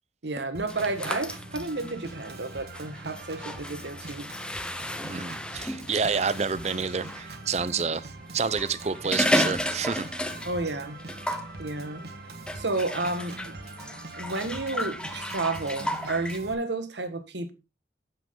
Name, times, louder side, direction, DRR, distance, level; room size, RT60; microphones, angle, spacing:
voice 1, 0.2-4.3 10.4-11.0 11.6-12.0 12.6-13.5 14.2-17.5, right 2 dB, 90° right, 1.5 m, -31 dB
Organ, 0.5-16.5, right 2 dB, 65° right, 1.4 m, -43 dB
sound 1, 0.7-7.3 8.4-10.7 11.0-11.5 12.5-16.4, left 1 dB, 5° left, 0.7 m, -33 dB
voice 2, 5.1-8.1 8.3-10.1, right 5 dB, 40° right, 0.5 m, -28 dB
9.1 x 7.6 x 3.7 m
head